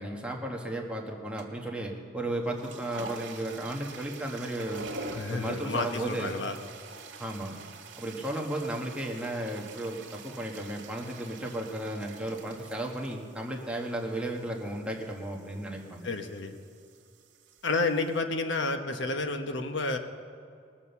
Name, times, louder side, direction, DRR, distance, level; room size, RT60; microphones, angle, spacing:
voice 1, 0.0-4.9 5.3-6.3 7.2-7.6 8.0-16.1, right 1 dB, 5° right, -1 dB, 1.3 m, -34 dB
sound 1, 1.4-1.7 2.4-18.2, right 3 dB, 75° right, 1.8 m, -46 dB
voice 2, 5.1-6.6 16.0-16.5 17.6-20.0, left 3 dB, 75° left, 6 dB, 1.0 m, -30 dB
19.5 x 7.3 x 6.9 m, 2.4 s
head